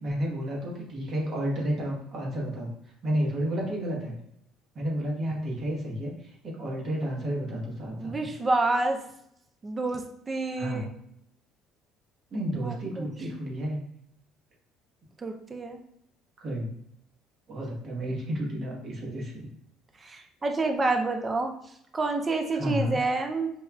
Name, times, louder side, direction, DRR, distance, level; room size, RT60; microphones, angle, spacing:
voice 1, 0.0-2.7 3.0-4.1 4.7-6.1 6.4-8.3 10.6-10.9 12.3-13.8 16.4-16.8 17.5-19.5 22.6-23.0, equal, 35° right, -2 dB, 1.0 m, -31 dB
voice 2, 7.9-9.0 9.6-10.9 12.5-13.1 15.2-15.8 20.0-21.5 21.9-23.5, right 3 dB, 20° right, 4 dB, 0.4 m, -28 dB
5.3 x 2.3 x 2.2 m, 0.73 s
cardioid pair, 160°, 0 cm